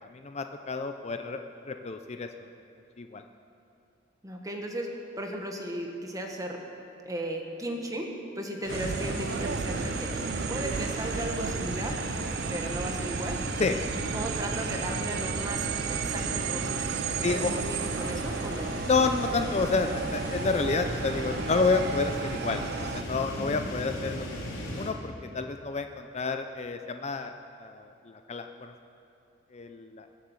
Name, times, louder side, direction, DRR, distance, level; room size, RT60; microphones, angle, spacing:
voice 1, 0.0-1.4 1.7-2.3 3.0-3.2 13.6-13.8 17.2-17.5 18.9-24.3 24.7-27.3 27.6-28.7 29.5-30.1, left 4 dB, 35° left, 7 dB, 0.5 m, -29 dB
voice 2, 4.2-4.9 5.2-6.6 7.0-8.1 8.3-10.1 10.5-12.0 12.5-13.4 14.1-16.9 17.2-18.7 23.4-23.6, right 1 dB, 20° right, 2 dB, 1.5 m, -36 dB
sound 1, 8.6-24.9, equal, 80° left, 3.3 m, -36 dB
sound 2, 8.7-23.0, right 7 dB, 55° right, 0.4 m, -34 dB
21.5 x 7.7 x 7.2 m, 2.7 s
head